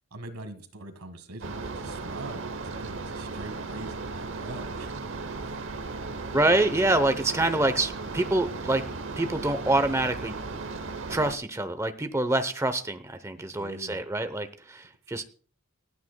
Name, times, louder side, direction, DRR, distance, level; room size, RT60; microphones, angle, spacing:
voice 1, 0.1-4.9 5.4-5.6 13.4-14.0 15.1-15.2, right 2 dB, 80° right, 10 dB, 1.6 m, -43 dB
sound 1, 1.4-11.4, right 3 dB, 60° right, 0.9 m, -36 dB
voice 2, 6.3-8.9 9.2-10.3 11.1-15.2, right 2 dB, 15° right, 10 dB, 0.7 m, -26 dB
28.0 x 9.4 x 2.2 m, 0.42 s
head